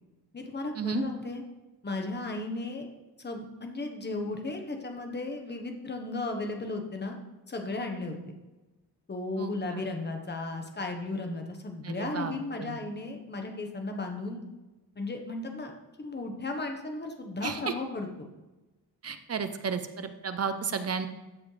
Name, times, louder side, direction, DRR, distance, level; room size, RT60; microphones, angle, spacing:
voice 1, 0.3-1.4 1.8-2.9 3.2-7.2 7.5-8.4 9.1-14.4 15.0-15.7 16.0-18.1, left 2 dB, 25° left, 3 dB, 1.2 m, -35 dB
voice 2, 11.8-12.8 17.4-17.6 19.0-21.1, right 5 dB, 40° right, 9 dB, 0.7 m, -33 dB
13.5 x 7.2 x 3.3 m, 1.1 s
wide cardioid pair, 145°, 40 cm